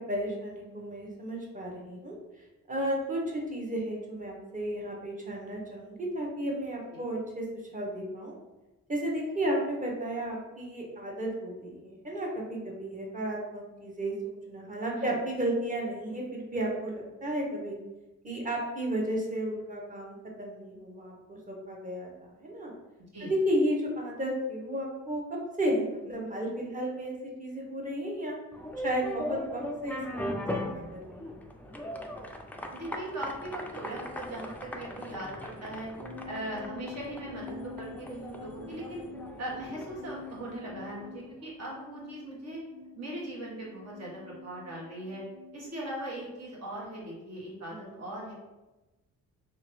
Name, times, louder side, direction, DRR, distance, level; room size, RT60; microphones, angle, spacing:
voice 1, 0.1-2.2 2.7-8.4 8.9-17.8 18.2-22.7 23.4-28.4 28.8-31.3 47.7-48.0, right 1 dB, 25° right, -1 dB, 1.0 m, -33 dB
sound 1, 28.5-41.3, left 1 dB, 5° left, 0.3 m, -39 dB
voice 2, 32.7-35.9 36.3-39.0 39.4-42.6 42.9-45.2 45.5-48.3, right 1 dB, 60° right, -4 dB, 1.4 m, -39 dB
sound 2, 36.0-45.7, left 3 dB, 85° right, 0.8 m, -47 dB
3.4 x 2.7 x 3.1 m, 1.1 s
cardioid pair, 90°, 30 cm